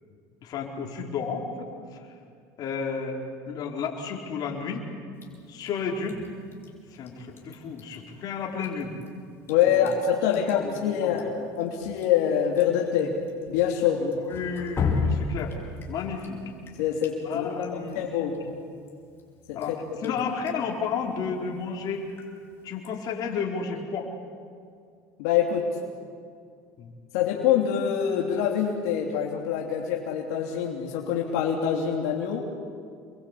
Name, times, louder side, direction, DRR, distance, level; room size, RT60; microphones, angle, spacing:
voice 1, 0.4-1.7 2.6-3.2 3.5-4.8 5.5-6.2 6.9-8.9 9.7-9.8 10.4-11.2 13.9-15.6 15.9-16.4 17.2-18.3 19.5-19.7 20.0-22.1 22.6-24.1 26.8-26.9, left 5 dB, 50° left, 0 dB, 5.1 m, -32 dB
Drip, 5.2-23.4, left 4 dB, 30° left, 5.5 m, -38 dB
voice 2, 9.5-13.2 13.5-14.0 16.8-18.4 19.5-19.8 20.0-20.2 25.2-25.7 27.1-32.4, left 9 dB, 85° left, 0 dB, 3.0 m, -25 dB
28.5 x 23.0 x 8.6 m, 2.3 s
supercardioid pair, 110°, 8 cm